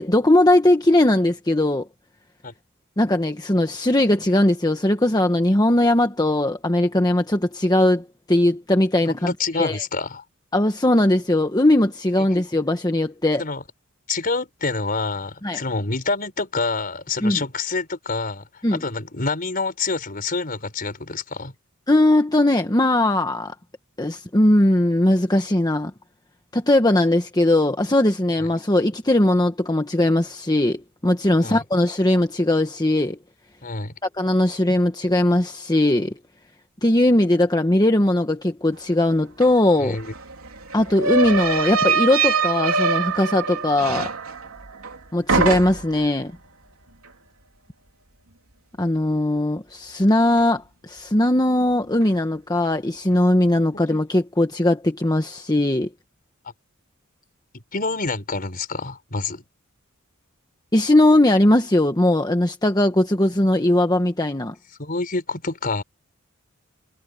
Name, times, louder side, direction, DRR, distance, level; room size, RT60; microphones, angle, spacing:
voice 1, 0.0-1.9 3.0-9.8 10.5-13.4 15.4-15.6 17.2-17.4 18.6-18.8 21.9-23.5 24.0-25.9 26.5-33.2 34.2-36.1 36.8-40.0 40.7-44.1 45.1-46.3 48.8-55.9 60.7-64.5, left 1 dB, 20° left, 1.3 m, -19 dB
voice 2, 9.1-10.2 13.4-13.6 14.1-21.5 28.4-28.5 31.4-31.6 33.6-33.9 39.8-40.1 53.7-53.8 56.4-56.5 57.7-59.4 64.8-65.8, left 3 dB, 45° left, 4.5 m, -27 dB
sound 1, 39.4-39.5 39.8-45.0 45.3-46.0, right 4 dB, 90° right, 3.5 m, -23 dB
head